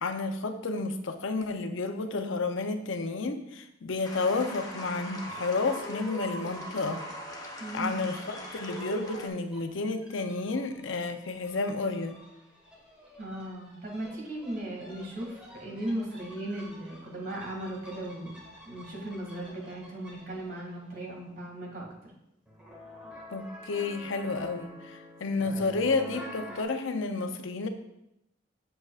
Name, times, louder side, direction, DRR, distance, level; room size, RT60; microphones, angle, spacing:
voice 1, 0.0-7.0 7.7-12.2 23.3-27.7, left 3 dB, 75° left, 7 dB, 0.6 m, -31 dB
sound 1, 4.0-9.3, equal, 20° left, 0.8 m, -40 dB
voice 2, 7.6-8.0 13.2-18.4 18.7-21.9, right 1 dB, 45° right, -2 dB, 2.2 m, -37 dB
sound 2, 8.7-20.8 22.5-26.6, left 1 dB, 5° right, 1.5 m, -49 dB
7.5 x 7.4 x 2.4 m, 0.84 s
head